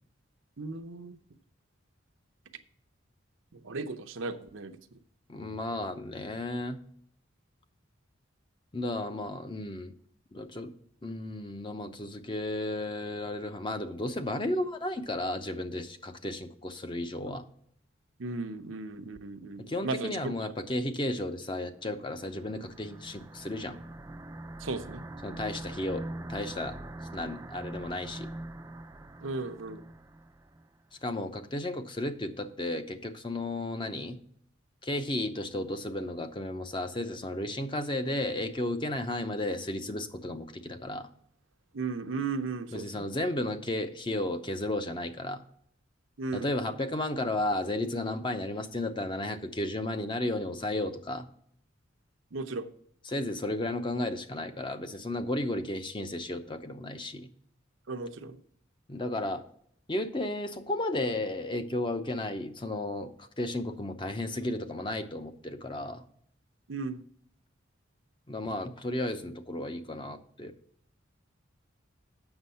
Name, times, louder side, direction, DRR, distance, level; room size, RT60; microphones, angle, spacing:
voice 1, 0.6-1.2 3.5-4.8 18.2-20.3 24.6-25.0 29.2-29.8 41.7-43.1 46.2-46.5 52.3-52.7 57.9-58.4 66.7-67.0, right 3 dB, 85° right, 7 dB, 0.8 m, -36 dB
voice 2, 5.3-6.8 8.7-9.9 10.3-10.7 11.0-17.4 19.6-23.8 25.2-26.8 27.1-28.3 31.0-34.2 34.8-41.1 42.7-45.4 46.3-51.2 53.1-57.3 58.9-59.4 59.9-66.0 68.3-70.5, left 1 dB, 25° left, 8 dB, 0.7 m, -33 dB
sound 1, 22.0-30.7, right 1 dB, 15° right, 0.4 m, -43 dB
8.0 x 6.3 x 5.5 m, 0.64 s
head